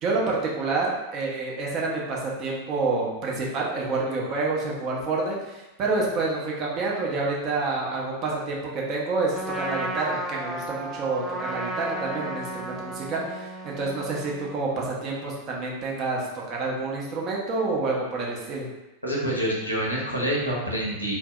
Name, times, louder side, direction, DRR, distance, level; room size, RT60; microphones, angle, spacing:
voice 1, 0.0-18.7, right 3 dB, 35° right, -3 dB, 0.7 m, -28 dB
Trumpet, 9.3-14.6, right 1 dB, ahead, 0.4 m, -34 dB
voice 2, 19.0-21.2, equal, 90° left, -4 dB, 0.8 m, -27 dB
2.5 x 2.0 x 3.6 m, 1.0 s
figure-of-eight pair, 90°, 0 cm